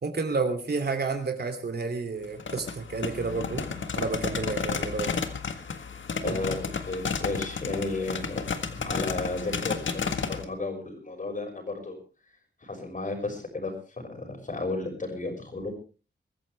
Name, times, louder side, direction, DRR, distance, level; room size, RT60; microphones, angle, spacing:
voice 1, 0.0-3.6 3.9-5.1 6.2-6.4, right 4 dB, 55° right, 7 dB, 2.9 m, -30 dB
sound 1, 2.2-10.4, left 5 dB, 85° left, 1.7 m, -32 dB
voice 2, 6.2-12.0 12.6-15.7, left 2 dB, 45° left, 3 dB, 6.1 m, -33 dB
23.0 x 14.5 x 3.4 m, 0.34 s
wide cardioid pair, 130°, 19 cm